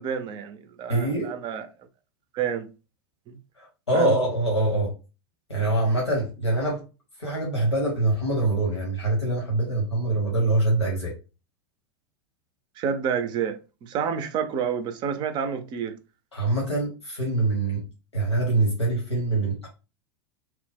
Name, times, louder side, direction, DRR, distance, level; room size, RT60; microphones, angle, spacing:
voice 1, 0.0-1.7 2.3-2.7 3.3-3.4 3.9-4.2 12.8-16.0, right 7 dB, 35° right, 0.4 m, -29 dB
voice 2, 0.9-1.3 3.6-4.9 5.5-6.8 7.2-11.1 16.3-17.8 18.1-19.7, right 2 dB, 85° left, 1.0 m, -24 dB
2.9 x 2.0 x 3.4 m
figure-of-eight pair, 90°, 14 cm